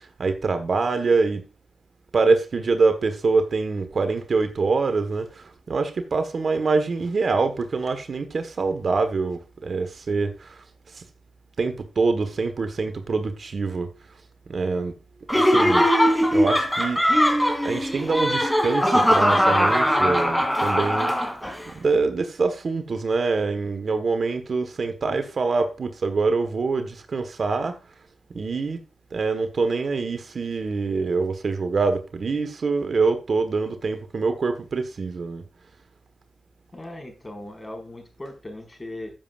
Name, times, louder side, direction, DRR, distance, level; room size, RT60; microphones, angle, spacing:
voice 1, 0.0-1.4 2.1-10.6 10.9-11.0 11.6-13.9 14.5-15.0 15.3-15.9 16.3-17.0 17.6-21.2 21.7-27.8 28.3-28.8 29.1-35.4, right 4 dB, 60° right, 1.3 m, -25 dB
Laughter, 15.3-21.6, equal, 5° left, 2.9 m, -20 dB
voice 2, 36.7-39.1, left 1 dB, 30° left, 4.9 m, -38 dB
14.5 x 7.4 x 2.5 m
supercardioid pair, 45°, 0 cm